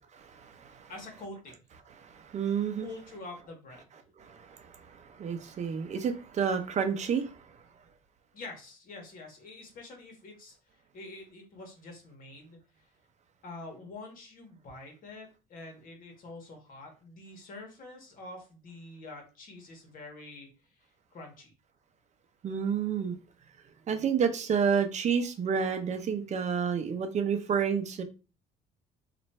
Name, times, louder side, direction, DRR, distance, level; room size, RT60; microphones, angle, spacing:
voice 1, 0.1-0.9 2.0-2.9 4.2-7.6 22.4-23.2 23.9-28.0, right 7 dB, 45° right, 0.7 m, -30 dB
voice 2, 0.9-1.6 2.8-3.9 8.3-10.5 10.9-12.6 13.4-20.5 21.1-21.5, left 2 dB, 55° left, 1.5 m, -46 dB
3.1 x 2.5 x 4.2 m
cardioid pair, 110°, 17 cm